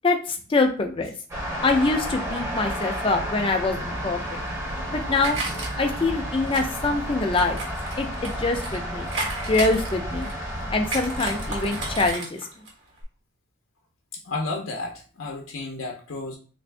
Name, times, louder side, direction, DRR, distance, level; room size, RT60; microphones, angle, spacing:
voice 1, 0.0-1.1 1.6-4.4 4.9-5.4 5.8-7.6 8.0-9.1 9.5-10.3 10.7-12.4, left 3 dB, 25° left, 4 dB, 0.4 m, -24 dB
sound 1, 1.3-12.1, equal, 15° right, 0.7 m, -31 dB
sound 2, 4.4-6.0 6.5-8.8 9.1-10.5 10.9-12.7 13.0-13.1, right 2 dB, 65° right, 1.2 m, -34 dB
voice 2, 14.2-16.4, left 3 dB, 80° left, 1 dB, 0.6 m, -32 dB
3.5 x 2.6 x 3.2 m, 0.40 s
head